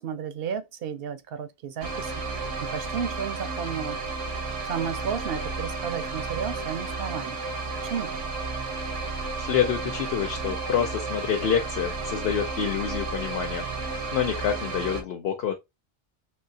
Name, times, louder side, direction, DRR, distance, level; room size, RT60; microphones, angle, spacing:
voice 1, 0.0-4.0 4.4-7.4 7.8-8.2, right 7 dB, 65° right, 0.7 m, -33 dB
sound 1, 1.8-15.0, right 3 dB, 85° right, 1.2 m, -32 dB
voice 2, 9.4-15.5, left 8 dB, 60° left, 0.8 m, -27 dB
3.7 x 2.7 x 2.7 m
omnidirectional pair, 1.3 m